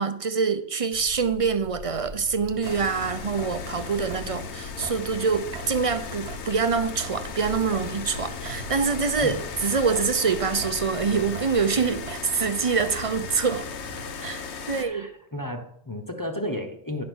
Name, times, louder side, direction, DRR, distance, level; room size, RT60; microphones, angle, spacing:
voice 1, 0.0-13.6 14.2-15.1, right 5 dB, 40° right, 0.6 m, -25 dB
sound 1, 0.9-12.1, left 2 dB, 50° left, 1.0 m, -44 dB
Sink (filling or washing) / Drip, 1.9-14.4, right 6 dB, 80° right, 1.0 m, -43 dB
sound 2, 2.6-14.8, left 6 dB, 90° left, 1.2 m, -37 dB
voice 2, 14.7-17.0, left 1 dB, 20° left, 0.9 m, -33 dB
11.0 x 5.2 x 6.2 m
omnidirectional pair, 1.1 m